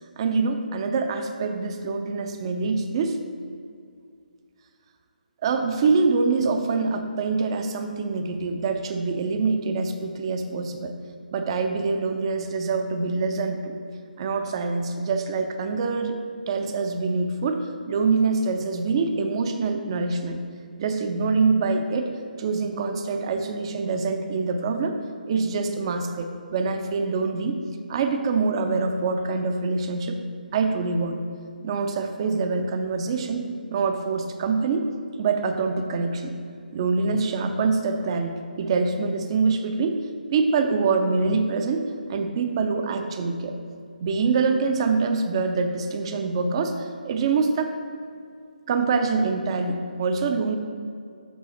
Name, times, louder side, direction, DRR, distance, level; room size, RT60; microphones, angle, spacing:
voice 1, 0.2-3.2 5.4-10.9 11.3-13.7 14.2-16.1 16.5-20.4 20.8-22.1 22.4-25.0 25.3-27.6 27.9-30.2 30.5-31.2 31.6-33.4 33.7-34.9 35.2-36.4 36.7-40.0 40.3-41.8 42.1-43.6 44.0-47.7 48.7-50.5, right 4 dB, 35° right, 6 dB, 0.5 m, -25 dB
7.4 x 5.4 x 4.2 m, 2.3 s
figure-of-eight pair, 145°, 5 cm